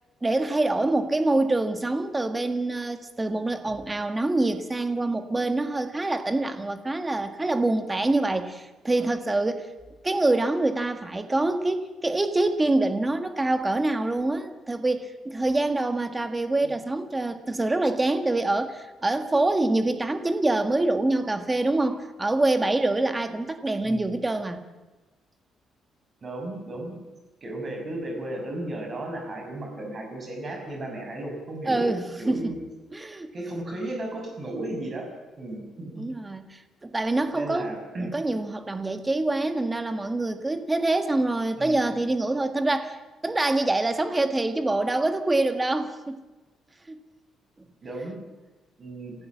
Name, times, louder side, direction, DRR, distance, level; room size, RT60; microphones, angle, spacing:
voice 1, 0.2-9.7 10.0-24.6 31.7-32.6 32.9-33.3 35.9-37.7 38.0-43.0 43.2-46.2 46.9-47.0, right 2 dB, 15° right, 8 dB, 1.6 m, -25 dB
voice 2, 23.8-24.1 26.2-26.9 27.4-31.9 32.2-32.6 33.3-35.1 35.4-36.1 37.3-38.1 41.6-41.9 47.8-48.2 48.8-49.1, right 1 dB, 30° right, 2 dB, 5.9 m, -34 dB
28.0 x 15.5 x 7.3 m, 1.1 s
cardioid pair, 145°, 0 cm